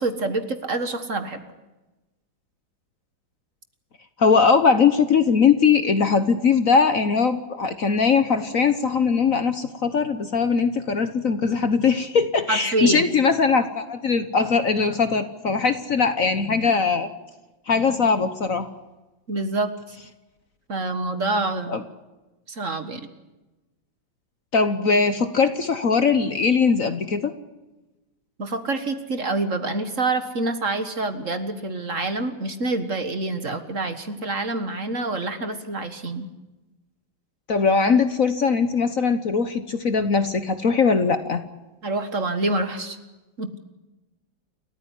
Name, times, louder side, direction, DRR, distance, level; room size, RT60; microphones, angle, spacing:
voice 1, 0.0-1.4 12.5-13.1 19.3-20.0 20.7-21.8 22.5-23.1 28.4-36.3 41.8-43.0 43.4-43.5, right 2 dB, 40° right, 9 dB, 1.8 m, -27 dB
voice 2, 4.2-17.1 17.7-18.7 21.7-21.8 24.5-27.3 37.5-41.4, left 5 dB, 50° left, 10 dB, 1.4 m, -20 dB
29.5 x 14.0 x 10.0 m, 1.1 s
omnidirectional pair, 2.1 m